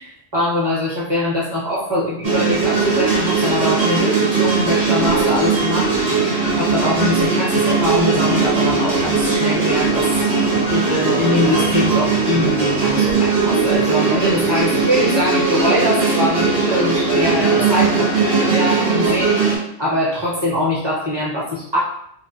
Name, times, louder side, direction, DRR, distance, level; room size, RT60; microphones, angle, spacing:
voice 1, 0.0-6.0 6.6-10.1 10.7-19.5 19.8-21.8, left 1 dB, 25° right, -7 dB, 0.9 m, -22 dB
sound 1, 2.2-19.6, right 4 dB, 85° right, 1.1 m, -18 dB
sound 2, 5.4-10.8, left 3 dB, 85° left, 0.9 m, -36 dB
2.4 x 2.3 x 2.6 m, 0.71 s
omnidirectional pair, 1.1 m